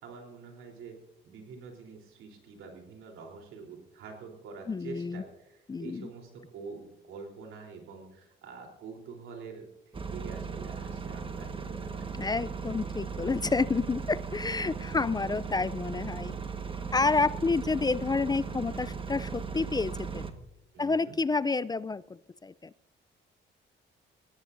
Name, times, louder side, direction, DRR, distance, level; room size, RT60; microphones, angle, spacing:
voice 1, 0.0-1.0 1.2-12.1 14.9-15.0 20.7-21.2, right 5 dB, 85° right, 2 dB, 3.6 m, -46 dB
voice 2, 4.7-5.2 5.7-6.1 12.2-16.4 16.9-20.3 20.8-22.7, left 4 dB, 20° left, 18 dB, 0.4 m, -29 dB
sound 1, 9.9-20.3, right 5 dB, 25° right, 1.4 m, -37 dB
21.5 x 16.5 x 2.6 m, 0.88 s
cardioid pair, 90°, 20 cm